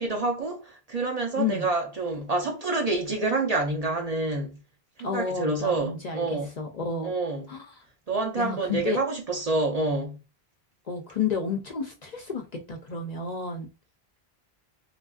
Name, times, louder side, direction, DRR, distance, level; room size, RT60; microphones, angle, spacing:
voice 1, 0.0-4.6 5.0-6.5 7.0-7.5 8.1-10.2, right 2 dB, 45° right, 0.6 m, -28 dB
voice 2, 1.4-1.7 5.0-6.3 6.6-7.1 7.5-7.7 8.4-9.0 10.9-12.4 12.7-13.7, left 5 dB, 50° left, 0.6 m, -30 dB
3.2 x 2.5 x 2.3 m
omnidirectional pair, 1.1 m